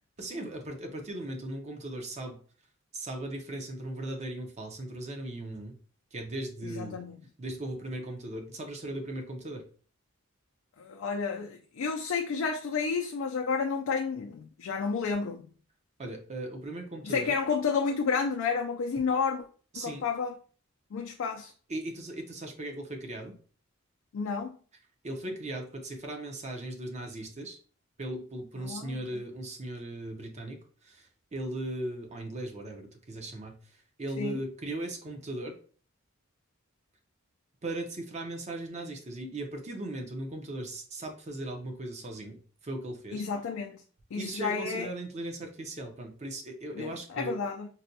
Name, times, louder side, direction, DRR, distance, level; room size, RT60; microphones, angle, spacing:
voice 1, 0.2-2.4 2.9-5.8 6.1-7.0 7.4-9.7 16.0-17.4 19.7-20.0 21.7-23.4 25.0-27.6 28.0-35.6 37.6-43.2 44.2-47.4, right 1 dB, 30° right, 0.6 m, -38 dB
voice 2, 6.6-7.2 10.8-15.5 17.0-19.4 19.7-20.4 20.9-21.5 24.1-24.6 28.6-29.0 34.2-34.4 43.1-43.8 44.1-44.9 46.7-47.7, left 5 dB, 70° left, 0.4 m, -31 dB
4.0 x 2.2 x 2.7 m
head